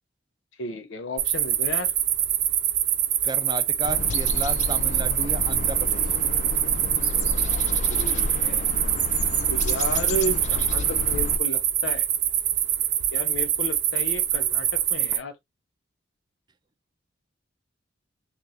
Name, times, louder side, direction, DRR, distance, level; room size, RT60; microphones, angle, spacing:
voice 1, 0.6-1.9 7.9-8.7 9.5-12.1 13.1-15.4, equal, 70° left, 0.8 m, -33 dB
sound 1, 1.2-15.2, right 10 dB, 55° right, 0.7 m, -24 dB
voice 2, 3.2-6.1, right 2 dB, 20° right, 0.6 m, -33 dB
sound 2, 3.8-11.4, left 3 dB, 35° left, 0.3 m, -31 dB
5.9 x 2.5 x 2.7 m
head